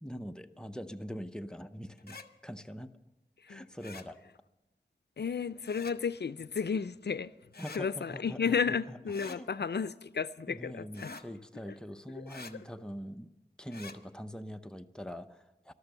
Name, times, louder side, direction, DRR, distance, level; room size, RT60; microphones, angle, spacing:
voice 1, 0.0-2.9 3.5-4.2 7.6-9.0 9.2-9.5 10.5-13.3 13.6-15.7, equal, 5° left, 0.7 m, -43 dB
sound 1, 2.0-2.3 3.8-4.1 5.6-6.0 7.5-7.8 9.1-9.4 10.9-11.3 12.3-12.5 13.7-14.0, left 3 dB, 65° left, 0.9 m, -46 dB
voice 2, 5.2-7.3 7.8-10.8 11.7-11.8 12.2-12.3, left 6 dB, 80° left, 0.4 m, -33 dB
13.0 x 12.5 x 6.7 m
wide cardioid pair, 50°, 17 cm